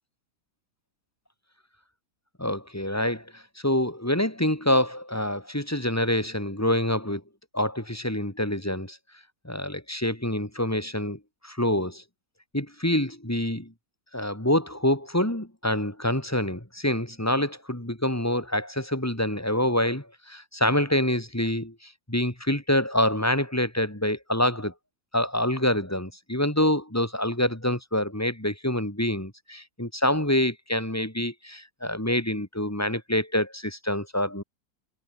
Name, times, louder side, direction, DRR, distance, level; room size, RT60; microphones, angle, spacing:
voice 1, 2.4-7.2 7.5-9.0 9.4-12.0 12.5-13.7 14.1-21.7 22.1-24.7 25.1-34.4, left 1 dB, 10° left, 3.2 m, -26 dB
omnidirectional pair, 1.7 m